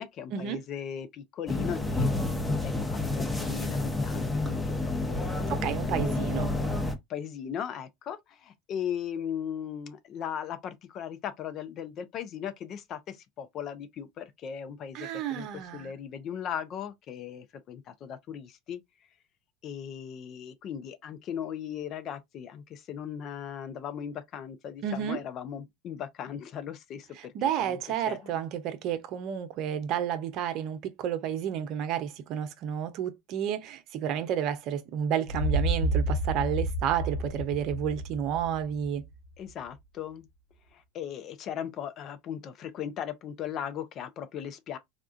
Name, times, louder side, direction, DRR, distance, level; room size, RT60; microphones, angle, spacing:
voice 1, 0.0-2.2 2.5-4.8 5.1-5.5 6.0-6.5 7.1-15.5 15.7-18.8 19.6-27.3 27.6-27.8 28.1-28.3 39.4-40.3 40.7-44.8, left 9 dB, 50° left, 0.6 m, -38 dB
sound 1, 1.5-6.9, left 2 dB, 10° left, 0.8 m, -29 dB
voice 2, 5.5-6.5 14.9-15.9 24.8-25.2 27.3-39.0, right 9 dB, 60° right, 0.7 m, -31 dB
sound 2, 35.3-39.1, right 1 dB, 80° left, 2.5 m, -30 dB
3.6 x 2.3 x 2.5 m
hypercardioid pair, 90°, 0 cm